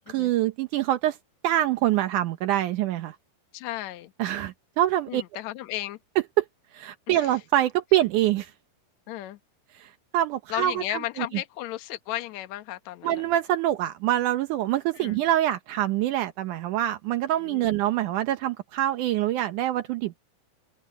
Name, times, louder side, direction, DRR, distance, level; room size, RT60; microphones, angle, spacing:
voice 1, 0.1-1.2 1.4-3.2 4.2-5.2 6.4-6.5 6.7-8.5 9.8-11.3 13.0-20.2, right 13 dB, 80° right, 1.8 m, -25 dB
voice 2, 3.5-4.1 5.1-6.0 7.1-7.3 9.1-9.4 10.5-13.2 15.0-15.2 17.4-17.7, left 15 dB, 80° left, 1.6 m, -34 dB
omnidirectional pair, 4.8 m